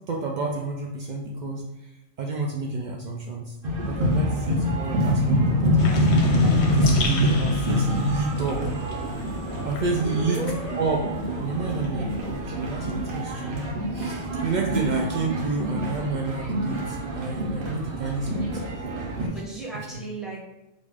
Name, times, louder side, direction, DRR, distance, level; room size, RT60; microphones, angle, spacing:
voice 1, 0.1-1.9 2.2-3.6 3.8-6.4 6.7-8.7 9.6-10.4 10.8-11.0 11.4-18.6 19.1-19.4, right 3 dB, 80° right, 0 dB, 0.4 m, -30 dB
sound 1, 3.6-19.3, equal, 50° right, 0.8 m, -26 dB
sound 2, 5.8-11.1 11.5-13.2, left 3 dB, 65° left, 0.8 m, -33 dB
voice 2, 10.0-10.8 19.3-20.4, right 2 dB, ahead, -7 dB, 1.0 m, -35 dB
5.1 x 2.6 x 3.3 m, 0.94 s
omnidirectional pair, 1.3 m